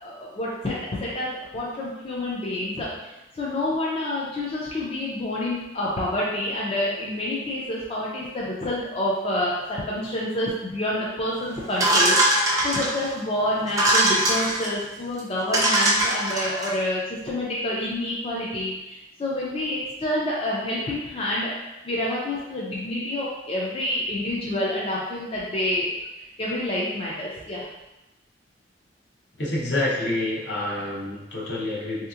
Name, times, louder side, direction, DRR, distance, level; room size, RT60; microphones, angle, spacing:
voice 1, 0.0-2.9 3.3-21.5 21.8-27.7, left 1 dB, 30° left, -5 dB, 0.4 m, -28 dB
sound 1, 11.8-13.1 13.7-14.7 15.2-15.3 15.5-16.7, right 1 dB, 20° right, 0.5 m, -21 dB
voice 2, 29.4-32.1, left 1 dB, 65° left, -5 dB, 0.8 m, -27 dB
3.3 x 2.8 x 2.4 m, 0.99 s
head